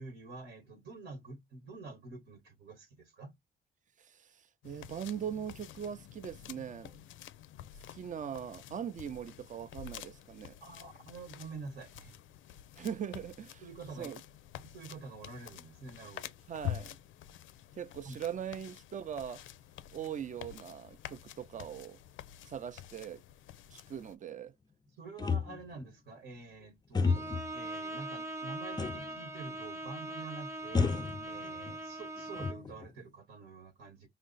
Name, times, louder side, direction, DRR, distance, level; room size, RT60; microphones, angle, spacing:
voice 1, 0.0-3.3 10.6-12.1 13.6-14.1 14.6-16.3 18.0-18.5 25.0-27.1 27.5-30.9 31.2-34.1, right 3 dB, 70° right, 1.2 m, -47 dB
sound 1, 4.6-24.1, left 12 dB, 75° left, 0.4 m, -48 dB
voice 2, 4.6-6.9 7.9-10.6 12.8-13.6 14.0-14.2 16.5-17.0 17.8-19.4 19.9-22.0 22.5-23.2 23.7-24.5, right 8 dB, 40° right, 0.5 m, -40 dB
sound 2, 25.2-25.9 26.9-27.5 28.8-29.2 29.5-29.6 30.7-31.8 32.2-33.0, left 4 dB, 20° left, 0.4 m, -32 dB
Bowed string instrument, 27.0-32.7, right 2 dB, 15° right, 0.9 m, -41 dB
5.1 x 2.0 x 3.9 m
cardioid pair, 90°, 20 cm